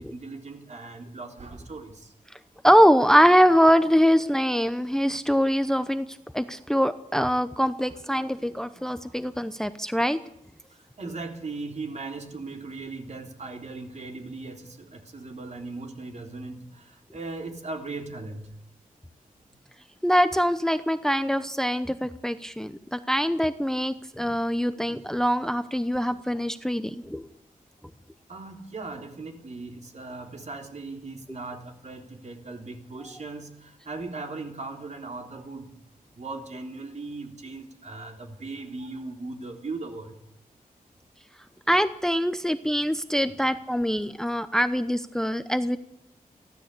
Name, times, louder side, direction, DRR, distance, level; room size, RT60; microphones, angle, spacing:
voice 1, 0.0-2.1 10.7-18.5 28.3-35.7 36.2-40.2 43.2-43.4, right 3 dB, 50° right, 3 dB, 3.6 m, -38 dB
voice 2, 2.6-6.1 6.3-10.2 20.0-27.2 41.7-45.8, equal, 5° left, 11 dB, 0.8 m, -23 dB
23.5 x 15.5 x 8.3 m, 0.80 s
wide cardioid pair, 110°, 15 cm